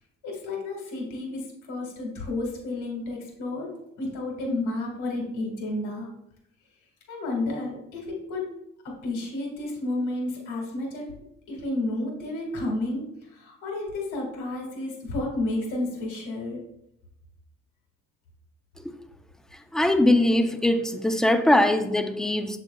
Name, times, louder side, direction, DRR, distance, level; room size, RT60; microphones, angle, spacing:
voice 1, 0.2-6.1 7.1-8.5 8.8-11.1 11.5-13.1 13.3-16.6, left 2 dB, 85° left, 1.9 m, -31 dB
voice 2, 19.7-22.6, left 1 dB, ahead, 0.5 m, -21 dB
7.2 x 6.5 x 2.3 m
cardioid pair, 90°, 30 cm